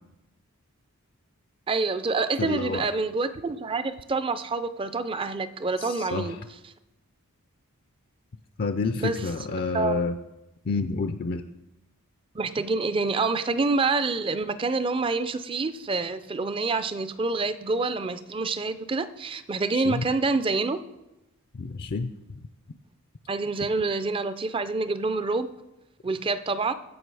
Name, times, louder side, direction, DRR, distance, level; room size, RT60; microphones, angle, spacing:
voice 1, 1.7-6.4 9.0-9.1 9.7-10.0 12.3-20.8 23.3-25.5 26.0-26.7, right 3 dB, 25° right, 13 dB, 0.4 m, -27 dB
voice 2, 2.4-2.9 5.8-6.4 8.6-10.2 10.6-11.5 19.7-20.1 21.5-22.2, left 4 dB, 45° left, 8 dB, 0.4 m, -29 dB
16.0 x 5.8 x 4.8 m, 0.96 s
head